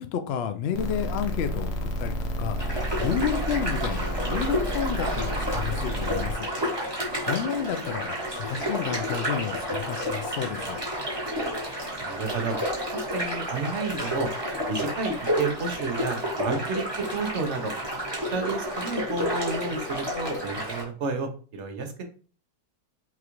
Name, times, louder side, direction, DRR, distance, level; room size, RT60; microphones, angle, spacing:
voice 1, 0.0-6.5 7.0-10.8, left 8 dB, 90° left, 9 dB, 0.5 m, -31 dB
sound 1, 0.7-6.3, right 1 dB, 55° left, 0.8 m, -30 dB
sound 2, 2.6-20.8, equal, 20° right, 1.1 m, -30 dB
voice 2, 12.0-12.6 12.9-14.3 14.7-17.7 18.3-22.0, right 4 dB, 55° right, 5 dB, 0.9 m, -31 dB
5.8 x 2.4 x 3.0 m, 0.39 s
omnidirectional pair, 1.7 m